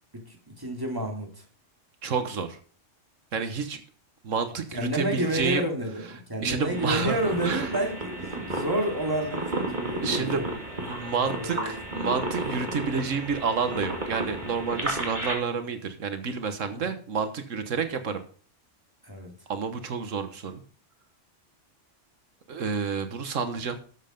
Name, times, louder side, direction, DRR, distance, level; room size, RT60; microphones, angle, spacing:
voice 1, 0.1-1.4 4.7-10.6 10.9-11.8 16.7-16.8 19.0-19.3, right 1 dB, 15° right, 2 dB, 2.6 m, -30 dB
voice 2, 2.0-2.6 3.3-3.8 4.2-5.7 6.4-7.2 7.4-7.7 10.0-10.4 10.9-18.2 19.5-20.6 22.5-23.8, right 5 dB, 90° right, 9 dB, 1.6 m, -29 dB
sound 1, 6.7-15.3, right 1 dB, 40° right, 2.8 m, -33 dB
12.5 x 7.7 x 5.2 m, 0.41 s
omnidirectional pair, 1.3 m